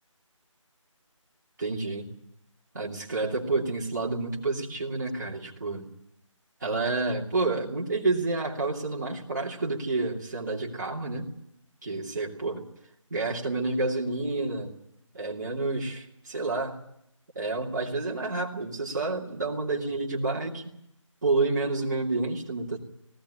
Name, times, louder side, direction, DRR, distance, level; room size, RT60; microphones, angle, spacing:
voice 1, 1.6-2.1 2.7-5.8 6.6-11.3 11.8-12.7 13.1-14.7 15.1-16.8 17.3-20.6 21.2-22.8, right 3 dB, 35° right, -3 dB, 2.8 m, -29 dB
19.0 x 15.0 x 9.9 m, 0.78 s
figure-of-eight pair, 175°, 17 cm